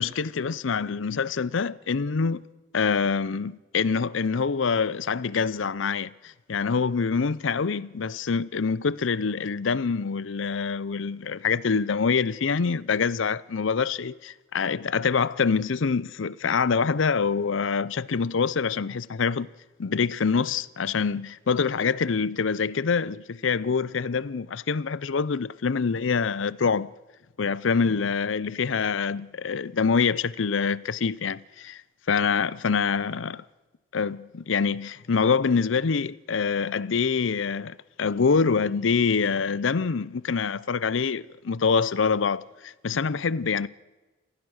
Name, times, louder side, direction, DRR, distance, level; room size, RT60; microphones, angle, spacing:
voice 1, 0.0-2.4 2.7-19.5 19.8-26.9 27.4-31.8 32.1-33.4 33.9-43.7, left 5 dB, 80° left, 0.6 m, -25 dB
28.5 x 15.5 x 6.4 m
head